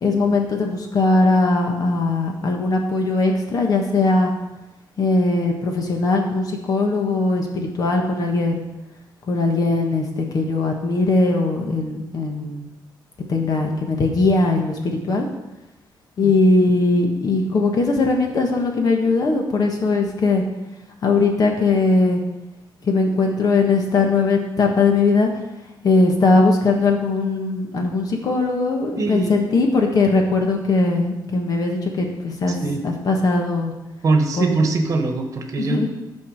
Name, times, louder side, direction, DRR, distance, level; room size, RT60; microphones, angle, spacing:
voice 1, 0.0-4.3 5.0-8.6 9.3-12.7 13.3-15.3 16.2-20.4 21.0-22.2 22.8-25.3 25.8-32.6 32.8-33.7 34.4-34.5 35.6-35.9, left 3 dB, 50° left, 2 dB, 1.4 m, -19 dB
voice 2, 29.0-29.3 32.6-32.8 34.0-35.8, right 3 dB, 40° right, 4 dB, 1.2 m, -21 dB
11.0 x 4.7 x 6.5 m, 0.99 s
wide cardioid pair, 165°, 8 cm